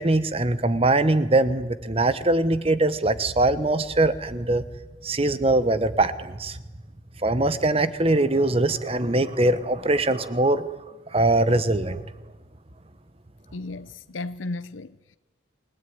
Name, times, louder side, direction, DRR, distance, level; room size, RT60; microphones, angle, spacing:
voice 1, 0.0-4.6 5.0-6.6 7.2-10.7 11.1-12.0, right 2 dB, 30° right, 1.1 m, -22 dB
voice 2, 13.5-15.2, left 2 dB, 90° left, 0.8 m, -35 dB
28.5 x 19.0 x 9.4 m
head